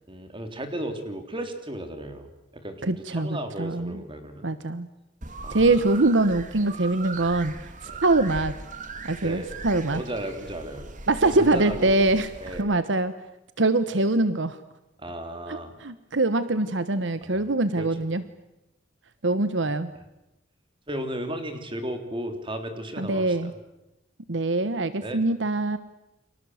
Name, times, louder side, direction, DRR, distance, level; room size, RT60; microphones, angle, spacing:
voice 1, 0.1-2.3 2.5-4.5 5.4-5.9 7.8-8.0 9.2-9.5 9.9-10.9 11.2-12.0 12.4-12.7 15.0-15.7 17.2-17.4 17.8-17.9 20.9-23.5 25.0-25.2, right 1 dB, 25° right, 7 dB, 3.5 m, -34 dB
voice 2, 2.8-4.0 4.4-4.9 5.5-8.6 9.0-10.0 11.1-13.1 13.6-14.6 15.5-18.2 19.2-19.9 23.0-23.5 24.3-25.8, right 2 dB, 70° right, 13 dB, 1.1 m, -24 dB
sound 1, 5.2-12.6, right 3 dB, 40° right, 2.2 m, -40 dB
30.0 x 24.5 x 7.9 m, 0.93 s
head